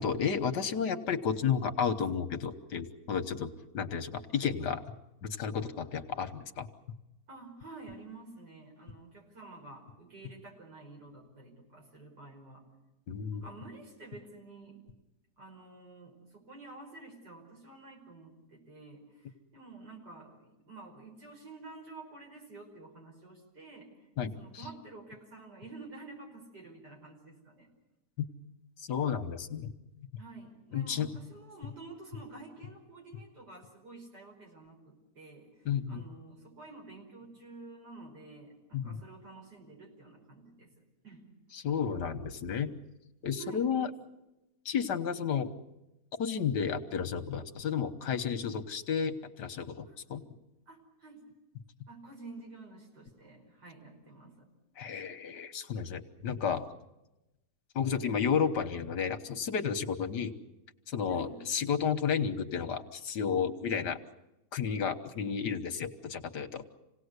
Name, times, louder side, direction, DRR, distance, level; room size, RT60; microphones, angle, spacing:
voice 1, 0.0-4.8 5.2-6.7 13.1-13.4 24.2-24.3 28.8-29.7 30.7-31.1 35.6-36.0 38.7-39.0 41.5-42.7 43.2-43.9 44.6-45.5 46.2-50.2 54.8-56.7 57.7-60.3 60.9-64.0 64.5-66.6, left 7 dB, 75° left, 8 dB, 1.8 m, -32 dB
voice 2, 7.3-12.6 13.3-14.8 15.4-23.9 24.3-27.7 30.2-35.5 35.9-40.7 41.0-41.2 43.4-43.7 49.8-50.3 50.7-51.3 51.9-54.5 61.1-61.4, right 3 dB, 75° right, 0 dB, 5.9 m, -50 dB
27.5 x 18.0 x 8.2 m, 0.96 s
omnidirectional pair, 1.8 m